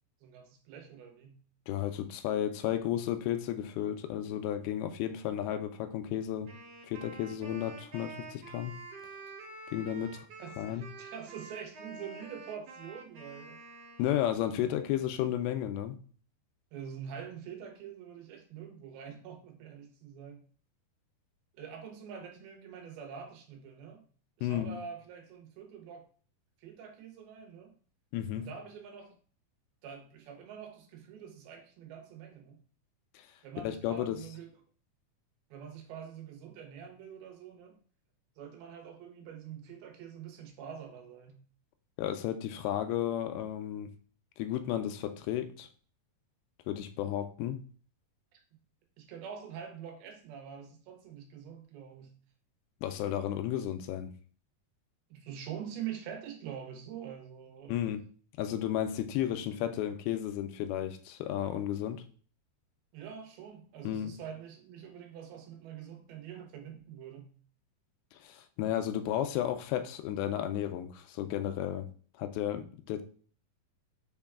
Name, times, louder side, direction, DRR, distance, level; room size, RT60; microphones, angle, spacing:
voice 1, 0.2-1.4 10.4-13.6 16.7-20.5 21.6-24.0 24.4-26.1 26.6-27.8 28.4-29.2 29.8-32.6 33.4-34.5 35.5-37.8 38.4-41.4 48.3-48.4 49.0-52.2 55.1-57.8 62.9-67.4, right 8 dB, 80° right, 2.7 m, -45 dB
voice 2, 1.7-6.5 6.9-8.8 9.7-10.3 10.6-10.9 14.0-16.0 24.4-24.8 28.1-28.5 33.1-33.3 33.6-34.2 42.0-43.9 44.4-45.7 46.7-47.6 52.8-54.1 57.7-58.0 58.4-62.0 63.8-64.1 68.1-71.9 72.2-73.0, left 11 dB, 85° left, 2.5 m, -33 dB
Wind instrument woodwind instrument, 6.5-14.6, right 3 dB, 60° right, 1.7 m, -48 dB
6.1 x 2.2 x 3.5 m
omnidirectional pair, 4.3 m